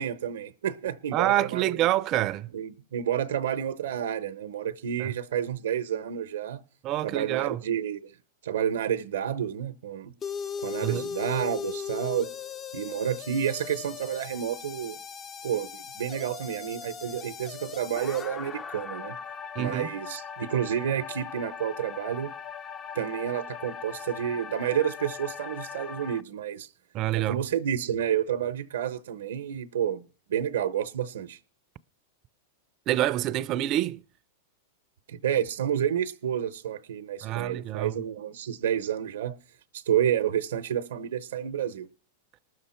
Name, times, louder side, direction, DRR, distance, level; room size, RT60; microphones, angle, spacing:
voice 1, 0.0-1.8 2.5-6.6 7.0-8.1 8.4-10.1 10.6-12.3 12.7-15.0 15.4-19.2 19.6-22.3 22.9-26.7 27.1-30.0 30.3-31.4 35.1-39.4 39.9-41.9, right 9 dB, 85° right, 0.7 m, -30 dB
voice 2, 1.1-2.5 5.0-5.1 6.8-7.6 10.8-11.1 19.6-19.9 26.9-27.4 32.9-34.0 37.2-38.0, right 14 dB, 40° right, 0.4 m, -27 dB
sound 1, 10.2-26.2, left 7 dB, 25° left, 0.4 m, -39 dB
19.5 x 6.6 x 4.3 m
hypercardioid pair, 125°, 0 cm